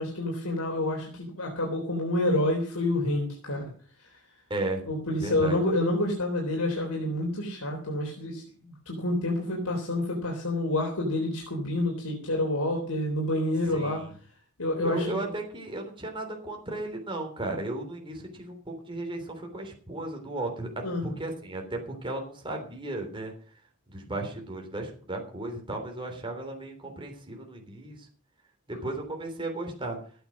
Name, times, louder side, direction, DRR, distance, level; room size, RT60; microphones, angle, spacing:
voice 1, 0.0-3.7 4.9-14.0 14.6-15.2 20.8-21.1, left 1 dB, 80° left, 0 dB, 3.6 m, -28 dB
voice 2, 4.5-4.8 5.2-5.6 13.7-14.1 14.8-23.3 23.9-28.1 28.7-30.0, right 2 dB, 25° right, 2 dB, 3.4 m, -35 dB
14.5 x 9.1 x 6.2 m, 0.44 s
head